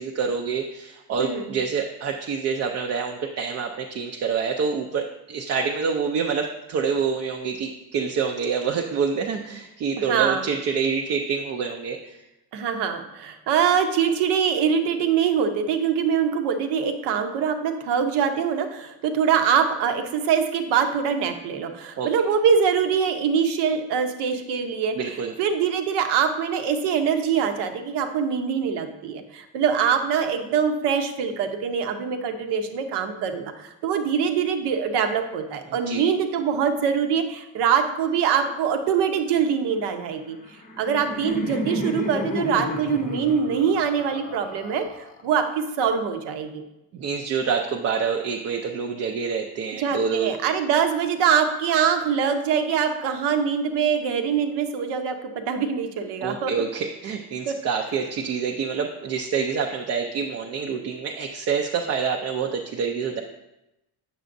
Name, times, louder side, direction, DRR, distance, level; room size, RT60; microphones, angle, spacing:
voice 1, 0.0-12.2 22.0-22.1 25.0-25.3 35.7-36.0 46.9-50.3 56.2-63.2, right 6 dB, 40° right, 2 dB, 0.4 m, -27 dB
voice 2, 1.2-1.5 10.0-10.4 12.5-25.0 25.4-40.4 40.8-46.6 49.8-56.5 57.5-57.6, right 7 dB, 80° right, 7 dB, 0.8 m, -23 dB
Laughter, 40.3-45.4, left 1 dB, 20° left, 0.5 m, -32 dB
8.0 x 6.8 x 2.6 m, 0.94 s
cardioid pair, 165°, 40 cm